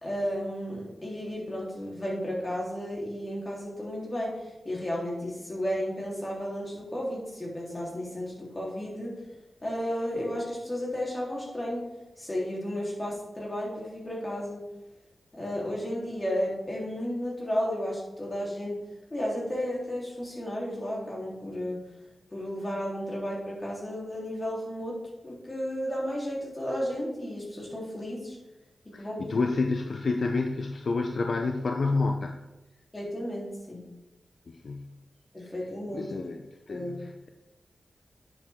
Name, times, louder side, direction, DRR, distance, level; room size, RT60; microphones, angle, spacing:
voice 1, 0.0-9.2 9.6-11.9 12.2-14.7 15.3-18.8 19.1-21.8 22.3-25.0 25.2-28.4 28.9-29.3 32.9-33.8 35.3-36.2 36.7-36.9, equal, 25° left, -4 dB, 3.6 m, -33 dB
voice 2, 28.9-32.3 34.5-34.9 35.9-36.4 36.7-37.3, left 3 dB, 65° left, 4 dB, 0.7 m, -29 dB
10.0 x 8.0 x 3.7 m, 1.0 s
wide cardioid pair, 75°, 0 cm